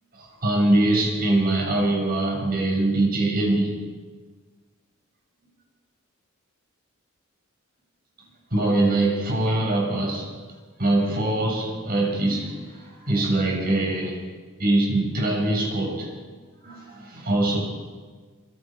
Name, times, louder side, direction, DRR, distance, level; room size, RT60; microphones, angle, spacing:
voice 1, 0.2-3.7 8.5-10.3 10.8-14.2 14.6-16.3 16.6-17.6, right 2 dB, 45° right, 0 dB, 6.2 m, -23 dB
26.0 x 24.5 x 5.0 m, 1.4 s
head